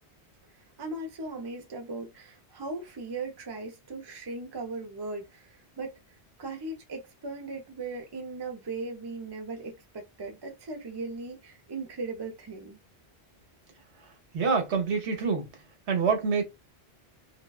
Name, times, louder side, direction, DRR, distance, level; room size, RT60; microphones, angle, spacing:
voice 1, 0.8-6.0 6.4-12.8, right 3 dB, 30° right, 0.5 m, -38 dB
voice 2, 14.3-15.5 15.9-16.4, right 5 dB, 85° right, 1.1 m, -26 dB
2.5 x 2.1 x 2.3 m
omnidirectional pair, 1.1 m